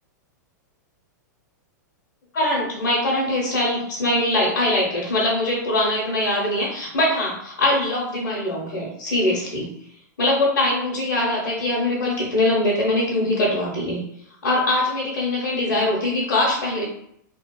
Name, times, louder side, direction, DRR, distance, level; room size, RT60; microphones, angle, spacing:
voice 1, 2.3-9.7 10.2-14.0 14.4-16.8, left 1 dB, 75° left, -6 dB, 0.9 m, -22 dB
2.9 x 2.3 x 2.3 m, 0.73 s
hypercardioid pair, 120°, 10 cm